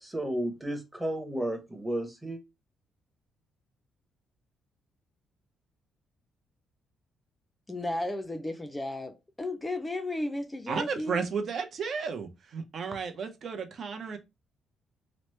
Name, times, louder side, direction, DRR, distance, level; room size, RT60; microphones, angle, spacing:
voice 1, 0.0-2.4, right 1 dB, 10° right, 0.8 m, -33 dB
voice 2, 7.7-11.2, left 1 dB, 15° left, 0.4 m, -34 dB
voice 3, 10.7-14.2, right 5 dB, 55° right, 0.6 m, -33 dB
2.9 x 2.0 x 3.1 m
cardioid pair, 110°, 0 cm